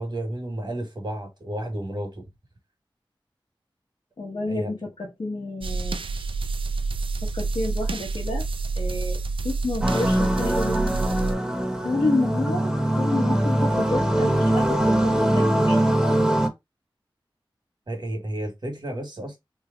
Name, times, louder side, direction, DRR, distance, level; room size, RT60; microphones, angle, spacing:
voice 1, 0.0-2.2 4.5-4.7 17.9-19.4, right 1 dB, 55° right, 1.6 m, -32 dB
voice 2, 4.2-6.0 7.2-8.4 8.7-9.2 9.4-11.2 11.8-12.7 13.0-15.8, left 2 dB, 75° left, 0.9 m, -29 dB
sound 1, 5.6-11.3, right 3 dB, 75° right, 0.4 m, -28 dB
sound 2, 9.8-16.5, right 1 dB, 5° right, 0.8 m, -22 dB
3.1 x 2.1 x 3.7 m
wide cardioid pair, 60°, 9 cm